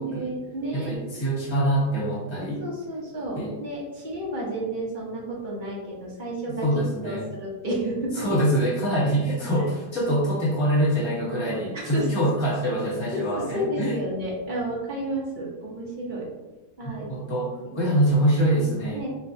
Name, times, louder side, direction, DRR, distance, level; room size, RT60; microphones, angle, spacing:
voice 1, 0.0-1.3 2.6-6.7 7.0-8.3 11.7-12.1 13.1-16.3 16.8-17.1 18.9-19.1, right 1 dB, 40° right, -4 dB, 0.8 m, -31 dB
voice 2, 0.7-2.6 3.3-3.5 6.5-7.2 8.2-14.0 16.8-17.5 17.7-19.0, right 1 dB, 20° left, -6 dB, 1.0 m, -24 dB
5.1 x 2.3 x 2.6 m, 1.1 s
omnidirectional pair, 1.9 m